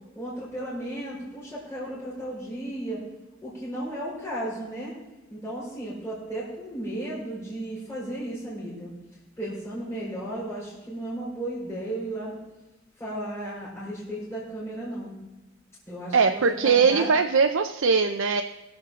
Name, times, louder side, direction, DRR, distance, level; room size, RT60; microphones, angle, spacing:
voice 1, 0.1-3.0 3.4-4.9 5.3-8.9 9.4-12.4 13.0-15.1 15.9-17.1, right 1 dB, 15° left, -9 dB, 4.6 m, -34 dB
voice 2, 16.1-18.4, right 5 dB, 75° right, 5 dB, 0.6 m, -21 dB
21.5 x 7.3 x 3.7 m, 1.1 s
head